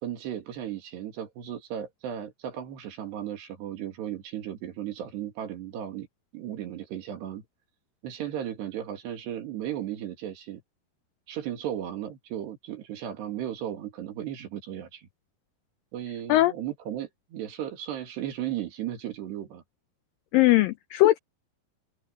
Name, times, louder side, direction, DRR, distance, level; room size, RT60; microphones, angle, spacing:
voice 1, 0.0-6.1 6.3-7.4 8.0-10.6 11.3-15.1 15.9-19.6, right 11 dB, 80° right, 4.5 m, -35 dB
voice 2, 20.3-21.2, left 16 dB, 90° left, 2.0 m, -20 dB
open air
omnidirectional pair, 4.8 m